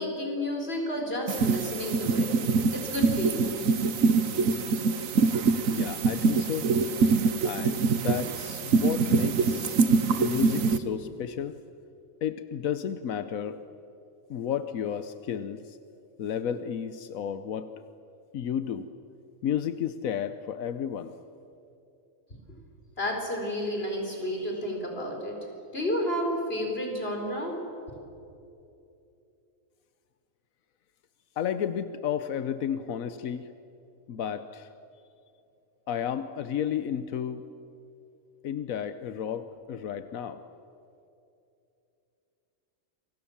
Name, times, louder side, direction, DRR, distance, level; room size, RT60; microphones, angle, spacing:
voice 1, 0.0-2.3 2.7-3.5 23.0-25.4 25.7-27.5, left 1 dB, 45° left, 1 dB, 4.6 m, -31 dB
sound 1, 1.3-10.8, right 4 dB, 80° right, 1.5 m, -24 dB
voice 2, 5.7-6.8 7.4-9.8 10.2-11.6 12.2-13.6 14.3-15.8 16.2-17.7 18.3-18.9 19.4-21.1 31.4-33.5 34.1-34.7 35.9-37.4 38.4-40.4, left 8 dB, 90° left, 11 dB, 1.3 m, -32 dB
28.5 x 24.0 x 7.2 m, 2.7 s
omnidirectional pair, 1.4 m